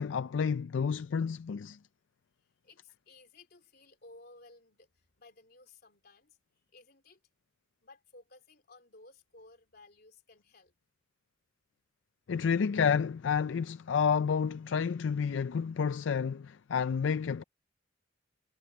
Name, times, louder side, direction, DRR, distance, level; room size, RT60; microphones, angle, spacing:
voice 1, 0.0-1.8 12.3-17.4, left 6 dB, 70° left, 0.4 m, -30 dB
voice 2, 2.4-7.2 7.8-10.7, left 2 dB, 50° left, 3.4 m, -57 dB
head